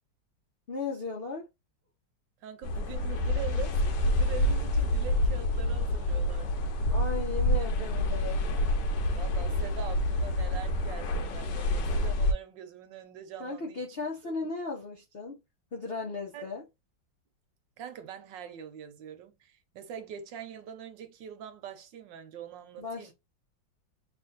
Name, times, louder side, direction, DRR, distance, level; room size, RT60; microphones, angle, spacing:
voice 1, 0.7-1.5 6.9-8.4 13.4-15.4 15.7-16.6 22.8-23.1, left 3 dB, 55° left, 0.6 m, -36 dB
voice 2, 2.4-3.8 4.0-6.7 9.2-13.8 14.2-14.5 16.3-16.5 17.8-23.1, right 9 dB, 75° right, 1.4 m, -43 dB
sound 1, 2.6-12.3, left 1 dB, 75° left, 1.3 m, -28 dB
3.3 x 2.6 x 3.9 m
omnidirectional pair, 2.0 m